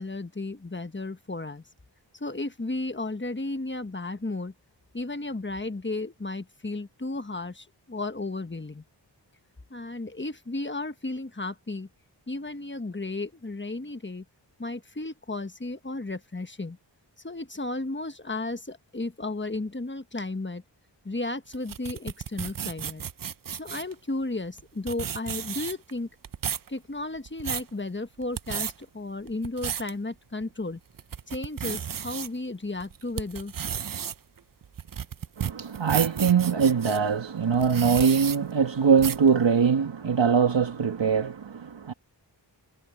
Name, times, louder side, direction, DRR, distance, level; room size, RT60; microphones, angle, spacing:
voice 1, 0.0-1.6 2.1-4.5 4.9-8.8 9.7-11.9 12.3-14.2 14.6-16.8 17.2-20.6 21.0-23.0 23.5-26.1 26.7-30.8 31.3-33.5, left 2 dB, 25° left, 1.3 m, -34 dB
sound 1, 21.5-23.9 24.6-24.7 24.9-25.9 26.2-26.7 27.2-27.7 28.2-28.7 29.3-29.9 30.4-30.5 31.0-32.3 32.8-37.0 37.5-38.4 39.0-39.3, right 8 dB, 50° right, 0.5 m, -33 dB
voice 2, 35.4-41.9, right 6 dB, 75° right, 1.3 m, -22 dB
wide cardioid pair, 45°, 45 cm